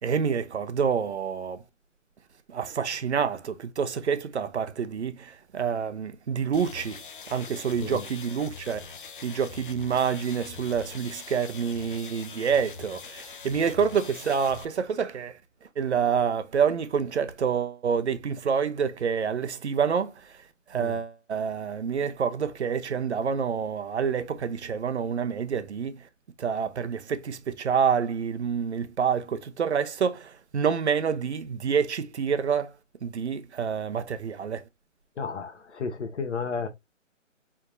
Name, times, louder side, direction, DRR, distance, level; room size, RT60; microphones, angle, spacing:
voice 1, 0.0-1.6 2.5-7.0 7.3-8.9 9.2-15.4 15.8-20.4 20.7-26.1 26.4-32.7 33.0-34.6, right 6 dB, 60° right, 0.8 m, -27 dB
sound 1, 6.5-14.6, left 5 dB, 45° left, 0.5 m, -43 dB
voice 2, 35.2-36.7, left 5 dB, 60° left, 1.2 m, -33 dB
4.6 x 3.6 x 2.5 m
hypercardioid pair, 155°, 39 cm